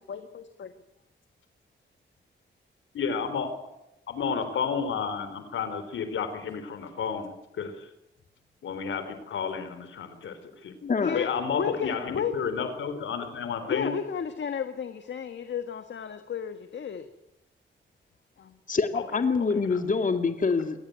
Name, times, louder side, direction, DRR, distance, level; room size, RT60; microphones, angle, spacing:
voice 1, 0.1-0.7 10.8-12.7 13.7-17.1 18.4-18.6, left 7 dB, 70° left, 8 dB, 1.5 m, -33 dB
voice 2, 2.9-3.5 4.1-7.9 8.6-10.7 11.1-13.9 18.9-19.0 19.7-19.8, left 6 dB, 85° left, 9 dB, 3.8 m, -31 dB
voice 3, 10.9-11.2 18.7-20.9, left 4 dB, 40° left, 7 dB, 2.0 m, -25 dB
22.5 x 17.0 x 9.3 m, 0.88 s
cardioid pair, 75°, 20 cm